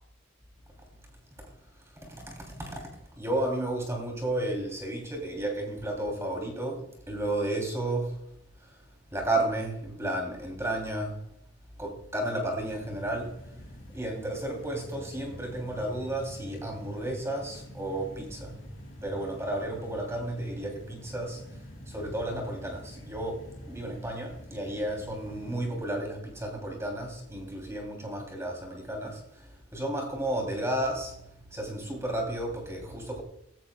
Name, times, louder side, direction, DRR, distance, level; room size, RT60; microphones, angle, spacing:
voice 1, 2.1-2.9 3.2-8.1 9.1-11.1 11.8-13.4 13.9-18.6 19.0-21.4 21.9-29.4 29.7-31.1 31.5-33.2, right 1 dB, 15° right, 1 dB, 3.1 m, -32 dB
sound 1, 12.6-25.7, equal, 75° left, 5.0 m, -46 dB
16.5 x 16.0 x 2.3 m, 0.78 s
head